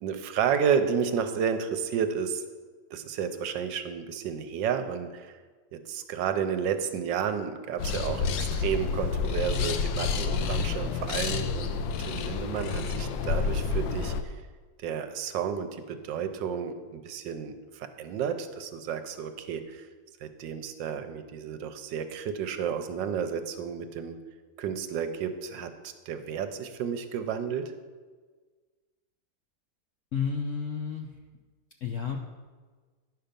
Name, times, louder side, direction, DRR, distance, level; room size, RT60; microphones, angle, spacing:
voice 1, 0.0-2.4 2.9-5.4 5.7-14.3 14.8-19.9 20.2-24.1 24.6-27.7, right 7 dB, 80° right, 9 dB, 1.3 m, -31 dB
sound 1, 7.8-14.2, left 5 dB, 85° left, 1.4 m, -29 dB
voice 2, 30.1-31.1 31.8-32.2, left 6 dB, 65° left, 2 dB, 0.7 m, -31 dB
10.0 x 5.7 x 5.2 m, 1.4 s
omnidirectional pair, 2.0 m